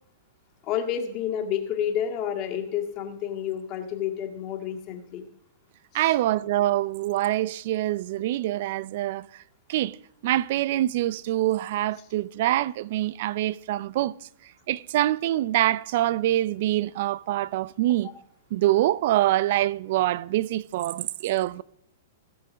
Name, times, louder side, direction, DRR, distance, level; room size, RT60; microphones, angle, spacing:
voice 1, 0.6-5.3 5.9-6.1, left 9 dB, 35° left, 1.9 m, -30 dB
voice 2, 5.9-9.4 9.7-10.0 10.2-14.1 14.7-18.1 18.5-21.6, right 14 dB, 55° right, 0.4 m, -25 dB
16.5 x 6.7 x 5.2 m
hypercardioid pair, 145°, 0 cm